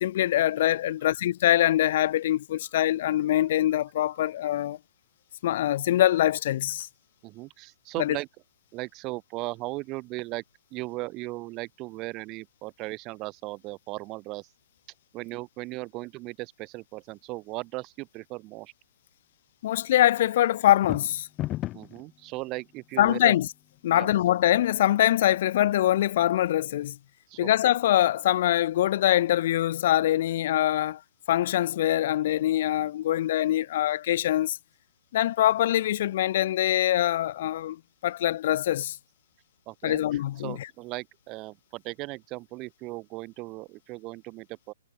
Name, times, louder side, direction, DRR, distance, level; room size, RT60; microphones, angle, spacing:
voice 1, 0.0-4.8 5.4-6.9 8.0-8.2 19.6-21.3 23.0-23.5 23.8-27.0 27.4-31.0 31.3-34.6 35.1-39.0 39.8-40.7, left 13 dB, 35° left, 0.5 m, -24 dB
voice 2, 7.2-8.3 8.7-10.4 10.7-14.5 15.1-18.7 21.7-23.3 23.9-24.1 27.3-27.5 39.7-40.0 40.4-44.7, right 22 dB, 20° right, 1.2 m, -37 dB
sound 1, 20.7-22.0, left 16 dB, 15° left, 1.3 m, -32 dB
hypercardioid pair, 175°, 0 cm